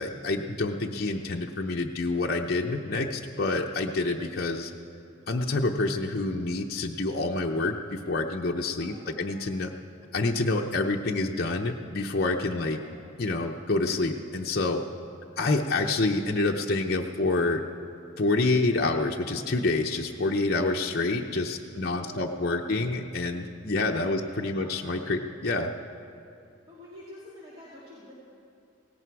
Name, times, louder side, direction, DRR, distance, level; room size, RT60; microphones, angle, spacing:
voice 1, 0.0-4.7 5.3-9.7 10.1-12.8 13.2-14.8 15.4-17.6 18.2-25.7, left 2 dB, 50° left, 0 dB, 0.7 m, -27 dB
voice 2, 8.8-9.3 12.5-12.9 19.9-20.0 21.7-22.8 24.0-24.7 26.7-28.1, equal, 25° right, -9 dB, 2.7 m, -48 dB
17.5 x 17.0 x 4.7 m, 2.6 s
head